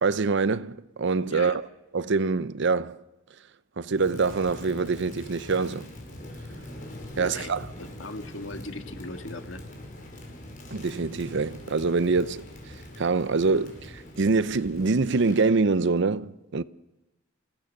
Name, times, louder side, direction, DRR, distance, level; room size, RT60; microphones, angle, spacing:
voice 1, 0.0-1.7 1.9-3.0 3.8-5.9 7.2-7.7 10.7-12.4 13.0-16.6, right 4 dB, 60° right, 0.7 m, -25 dB
voice 2, 1.3-1.6 7.1-7.5 7.8-9.6, left 2 dB, 70° left, 1.9 m, -39 dB
Crackle, 3.9-15.5, left 1 dB, 40° left, 5.1 m, -43 dB
28.5 x 17.0 x 6.6 m
head